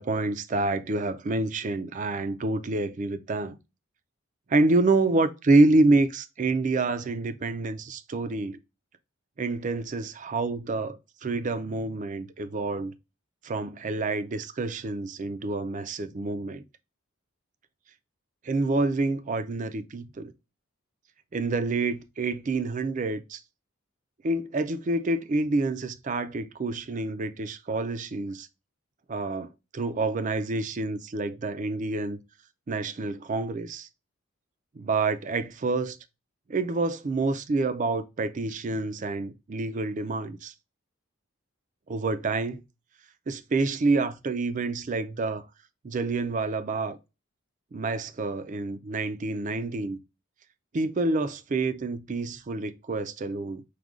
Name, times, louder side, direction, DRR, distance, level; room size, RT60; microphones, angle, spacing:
voice 1, 0.0-3.6 4.5-8.6 9.4-12.9 13.4-16.6 18.4-20.3 21.3-23.4 24.2-28.5 29.1-32.2 32.7-33.9 34.7-36.0 36.5-40.5 41.9-42.6 43.3-45.5 45.8-47.0 47.7-50.0 50.7-53.6, right 3 dB, 35° right, 0.4 m, -27 dB
4.9 x 2.2 x 3.6 m
head